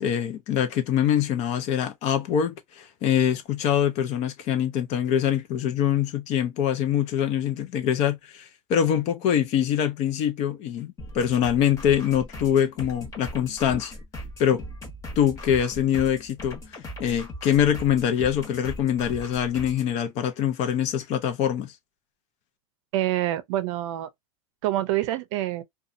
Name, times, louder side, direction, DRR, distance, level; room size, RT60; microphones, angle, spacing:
voice 1, 0.0-13.9 14.4-14.6 15.2-16.6 17.0-21.7, left 9 dB, 45° left, 0.6 m, -24 dB
sound 1, 11.0-19.9, left 1 dB, 20° left, 1.1 m, -39 dB
voice 2, 22.9-24.1 24.6-25.6, right 14 dB, 65° right, 0.5 m, -26 dB
2.6 x 2.3 x 2.5 m
supercardioid pair, 140°, 17 cm